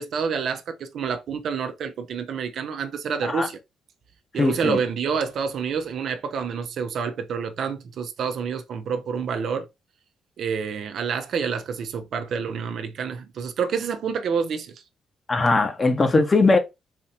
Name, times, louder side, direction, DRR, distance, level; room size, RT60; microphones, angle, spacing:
voice 1, 0.0-3.6 4.3-9.7 10.4-14.7, right 6 dB, 65° right, 0.8 m, -28 dB
voice 2, 4.4-4.8 15.3-16.6, left 3 dB, 30° left, 1.2 m, -20 dB
4.3 x 2.8 x 4.3 m
cardioid pair, 90°, 0 cm